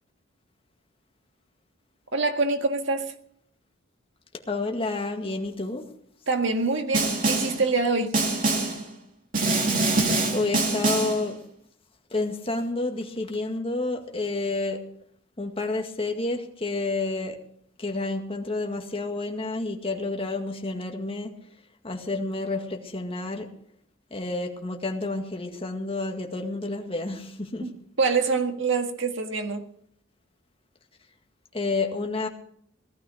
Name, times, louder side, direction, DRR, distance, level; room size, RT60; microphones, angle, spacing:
voice 1, 2.1-3.1 6.3-8.1 27.6-27.7 28.0-29.6, right 4 dB, 65° right, 6 dB, 1.7 m, -25 dB
voice 2, 4.5-5.9 10.3-11.4 12.1-14.8 15.4-17.4 17.8-21.3 21.8-23.5 24.1-27.7 31.5-32.3, left 2 dB, 25° left, 3 dB, 2.0 m, -29 dB
Snare drum, 6.9-7.6 8.1-8.8 9.3-11.2, right 3 dB, 40° right, 2.9 m, -24 dB
18.0 x 13.0 x 5.1 m, 0.67 s
head